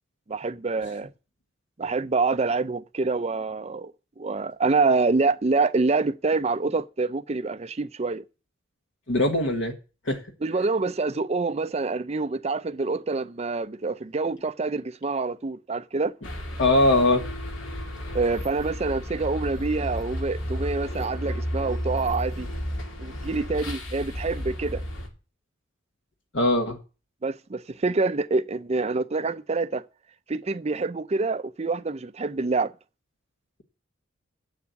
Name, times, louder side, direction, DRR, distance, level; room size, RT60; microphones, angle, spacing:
voice 1, 0.3-1.1 1.8-8.2 10.4-16.1 18.1-22.5 23.0-24.8 27.2-29.8 30.3-32.7, right 3 dB, 35° right, 0.5 m, -26 dB
voice 2, 9.1-9.7 10.1-10.2 16.6-17.2 26.3-26.8, left 2 dB, 65° left, 1.4 m, -21 dB
sound 1, 16.2-25.1, equal, 85° left, 2.3 m, -33 dB
8.2 x 7.1 x 8.1 m
head